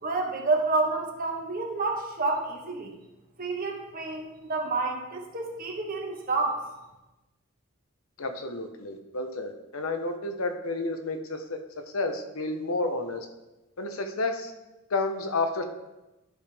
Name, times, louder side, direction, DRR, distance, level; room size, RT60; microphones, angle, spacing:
voice 1, 0.0-2.9 3.4-6.6, right 3 dB, 45° right, 2 dB, 1.2 m, -29 dB
voice 2, 8.2-11.6 11.9-13.3 13.8-14.5 14.9-15.6, left 2 dB, 90° left, 6 dB, 0.8 m, -30 dB
11.5 x 5.1 x 3.5 m, 1.0 s
head